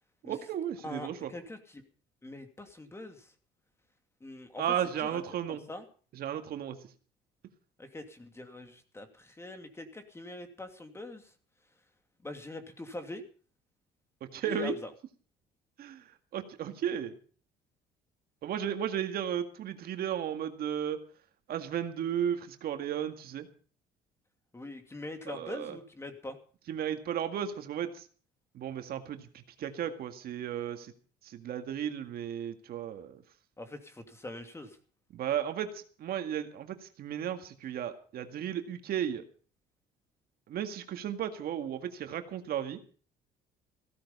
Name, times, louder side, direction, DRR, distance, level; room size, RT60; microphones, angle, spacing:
voice 1, 0.2-1.3 4.6-5.6 6.1-6.8 14.2-14.8 15.8-17.2 18.4-21.0 21.5-23.5 25.3-25.8 26.7-28.1 28.5-30.9 31.2-33.2 35.1-39.2 40.5-42.8, right 9 dB, 65° right, 7 dB, 2.0 m, -34 dB
voice 2, 0.8-1.8 2.2-3.3 4.2-4.6 5.0-5.2 5.5-5.8 7.8-11.3 12.2-13.2 14.5-14.9 24.5-26.4 33.6-34.8, left 1 dB, 15° left, 7 dB, 2.6 m, -43 dB
16.0 x 13.0 x 5.5 m, 0.42 s
cardioid pair, 110°, 17 cm